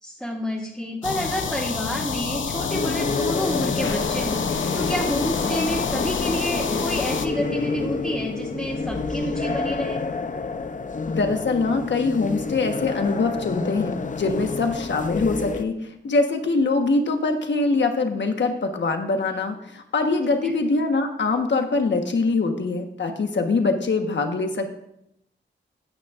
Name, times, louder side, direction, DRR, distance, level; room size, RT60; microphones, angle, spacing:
voice 1, 0.0-10.0 20.4-20.5, equal, ahead, -6 dB, 2.1 m, -29 dB
sound 1, 1.0-7.3, left 5 dB, 90° left, 0.7 m, -28 dB
sound 2, 2.5-15.6, left 4 dB, 45° left, 0.6 m, -29 dB
voice 2, 11.1-24.7, left 3 dB, 70° left, 4 dB, 1.3 m, -23 dB
15.0 x 9.2 x 2.5 m, 0.78 s
wide cardioid pair, 100°, 19 cm